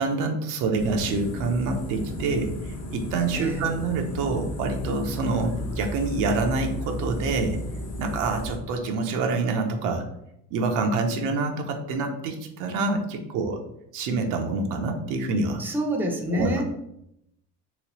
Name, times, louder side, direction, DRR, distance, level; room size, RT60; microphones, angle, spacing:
voice 1, 0.0-7.6 8.0-10.0 10.5-13.6 13.9-15.6 16.3-16.5, right 3 dB, 75° right, 4 dB, 0.7 m, -26 dB
sound 1, 0.8-8.6, left 1 dB, 50° left, 0.9 m, -34 dB
voice 2, 15.6-16.6, equal, 5° right, 2 dB, 0.5 m, -27 dB
3.1 x 3.0 x 3.0 m, 0.79 s
cardioid pair, 105°, 31 cm